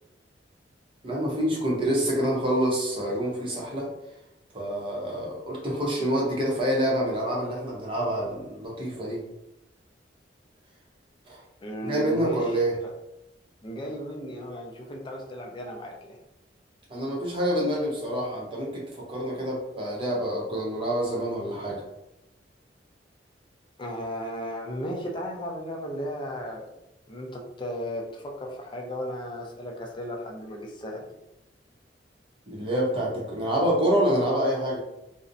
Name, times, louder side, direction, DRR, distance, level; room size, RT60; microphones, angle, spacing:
voice 1, 1.0-3.9 4.5-9.2 11.3-11.4 11.8-12.8 16.9-21.8 32.5-34.8, right 1 dB, 30° right, -3 dB, 0.6 m, -27 dB
voice 2, 11.6-12.4 12.8-12.9 13.6-16.2 23.8-26.7 27.1-31.1, equal, 25° left, 0 dB, 0.4 m, -35 dB
2.5 x 2.0 x 2.5 m, 0.88 s
head